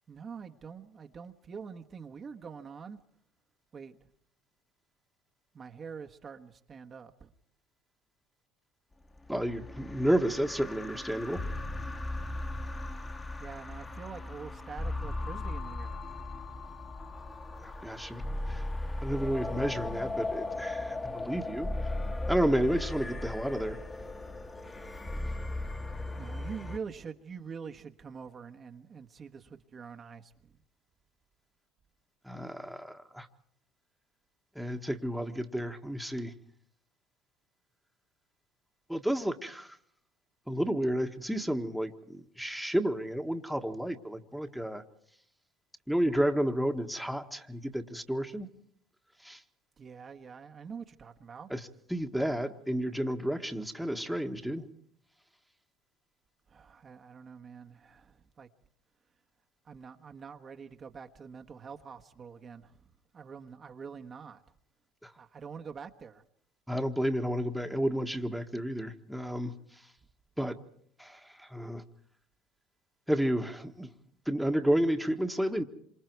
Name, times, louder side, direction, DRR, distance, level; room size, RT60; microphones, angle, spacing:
voice 1, 0.0-3.0 3.7-4.0 5.5-7.3 13.4-16.0 26.1-30.6 49.8-51.5 56.5-58.5 59.6-62.8 63.1-64.4 65.2-66.2, right 6 dB, 35° right, 1.4 m, -45 dB
sound 1, 9.2-26.8, left 2 dB, 20° left, 1.7 m, -37 dB
voice 2, 9.3-11.4 17.6-18.2 18.5-18.6 19.0-21.7 22.3-23.8 32.2-33.3 34.5-36.3 38.9-39.8 40.5-44.8 45.9-48.5 49.2-49.4 51.5-54.7 65.0-65.1 66.7-69.5 70.4-70.5 71.0-71.8 73.1-73.9 74.3-75.6, equal, ahead, 1.6 m, -31 dB
26.5 x 25.5 x 4.7 m
supercardioid pair, 85°, 0 cm